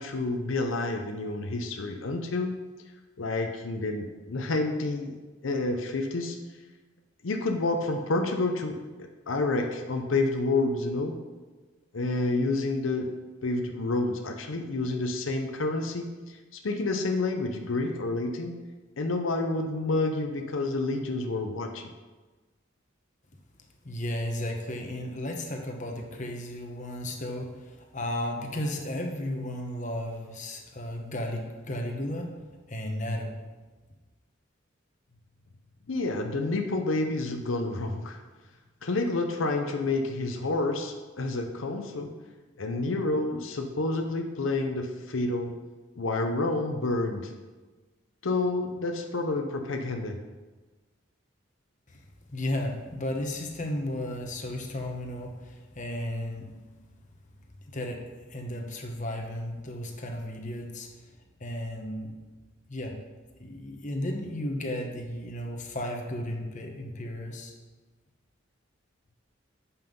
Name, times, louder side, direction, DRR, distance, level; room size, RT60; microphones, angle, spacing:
voice 1, 0.0-2.6 3.2-5.2 5.4-6.4 7.2-11.2 11.9-13.1 13.4-18.6 19.0-21.9 35.9-38.2 38.8-42.1 42.6-45.5 46.0-47.3 48.2-50.2, left 2 dB, 85° left, 4 dB, 0.7 m, -29 dB
voice 2, 23.8-32.3 32.7-33.3 51.9-52.0 52.3-56.5 57.7-58.0 58.3-60.9 61.4-62.1 62.7-62.9 63.4-67.5, left 1 dB, 40° left, 2 dB, 1.1 m, -34 dB
7.9 x 5.6 x 5.3 m, 1.3 s
head